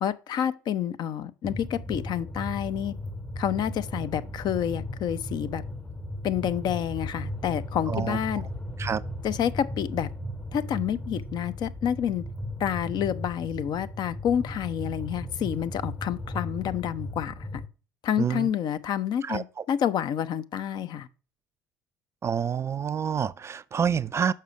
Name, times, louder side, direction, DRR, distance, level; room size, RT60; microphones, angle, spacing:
voice 1, 0.0-2.9 3.4-5.6 6.2-8.4 9.2-10.1 10.5-12.2 12.6-17.6 18.0-21.1, left 9 dB, 45° left, 0.6 m, -29 dB
sound 1, 1.4-17.7, left 1 dB, 15° left, 0.9 m, -36 dB
voice 2, 7.9-8.2 8.8-9.0 18.2-18.5 19.2-19.4 22.2-24.3, right 7 dB, 25° right, 0.3 m, -27 dB
6.6 x 5.5 x 4.9 m
figure-of-eight pair, 60°, 10 cm